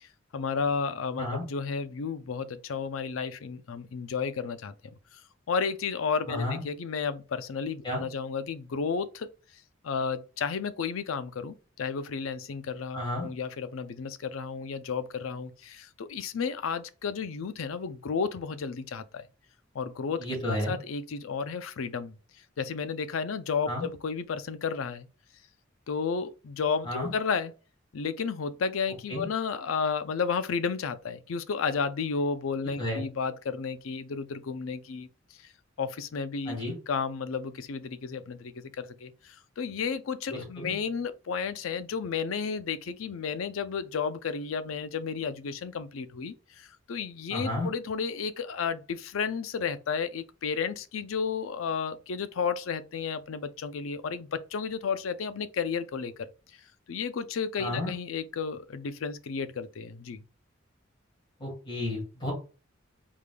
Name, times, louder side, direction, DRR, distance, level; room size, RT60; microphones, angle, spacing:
voice 1, 0.0-4.7 5.5-9.3 9.8-19.2 19.7-22.2 22.6-25.1 25.9-27.5 27.9-35.1 35.8-36.6 36.9-56.3 56.9-60.2, left 5 dB, 90° left, 0.5 m, -32 dB
voice 2, 6.3-6.6 7.8-8.0 12.9-13.3 20.2-20.7 23.7-23.9 26.8-27.1 29.1-29.2 32.8-33.0 36.5-36.7 40.3-40.7 47.3-47.7 57.6-57.9 61.4-62.3, left 1 dB, 25° left, 2.4 m, -32 dB
4.9 x 3.5 x 2.2 m
head